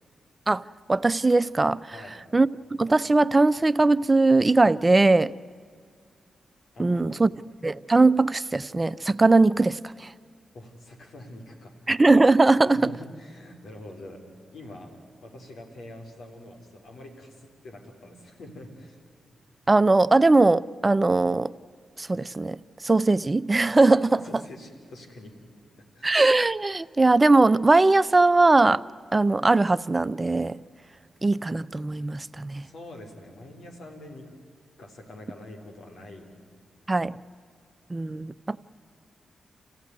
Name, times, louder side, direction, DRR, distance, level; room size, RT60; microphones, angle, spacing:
voice 1, 0.9-1.9 2.3-2.5 2.8-5.3 6.8-7.3 7.6-10.1 11.9-12.9 19.7-21.5 22.0-22.6 22.8-24.2 26.0-28.8 29.1-30.6 31.2-32.7 36.9-37.2 37.9-38.6, right 3 dB, 30° right, 0.5 m, -20 dB
voice 2, 6.7-7.3 10.5-11.9 12.6-14.2 14.5-19.0 24.1-26.1 32.6-34.4 34.8-36.3, left 1 dB, 75° left, 3.9 m, -45 dB
28.5 x 15.5 x 9.7 m
cardioid pair, 55°, 0 cm